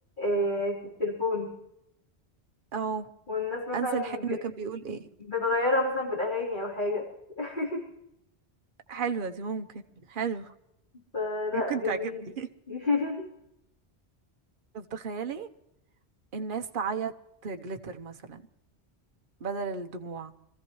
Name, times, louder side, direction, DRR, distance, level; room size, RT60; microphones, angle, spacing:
voice 1, 0.2-1.5 3.3-4.4 5.3-7.1 7.4-7.8 11.1-12.2 12.7-13.3, left 2 dB, 45° left, 4.0 m, -29 dB
voice 2, 2.7-3.1 3.7-5.1 8.9-9.8 10.1-10.5 11.5-12.5 14.7-15.5 16.3-17.1 17.4-18.4 19.4-20.3, right 6 dB, 55° right, 1.0 m, -33 dB
25.5 x 15.0 x 3.1 m
omnidirectional pair, 1.1 m